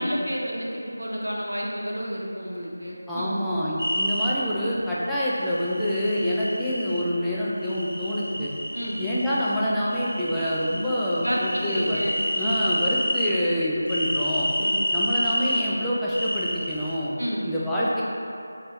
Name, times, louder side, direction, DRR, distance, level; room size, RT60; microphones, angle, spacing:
voice 1, 0.0-3.4 8.7-9.0 11.2-12.6 14.6-14.8 17.2-17.5, equal, 80° right, -3 dB, 0.8 m, -30 dB
voice 2, 3.1-8.5 9.0-12.0 12.4-14.5 14.9-17.1 17.4-18.0, equal, ahead, -11 dB, 0.4 m, -26 dB
sound 1, 3.8-4.3 5.4-7.0 7.6-9.6 9.9-13.3 13.9-15.6 16.1-17.0, equal, 70° left, 1.2 m, -29 dB
5.2 x 2.8 x 3.0 m, 2.7 s
figure-of-eight pair, 165°, 0 cm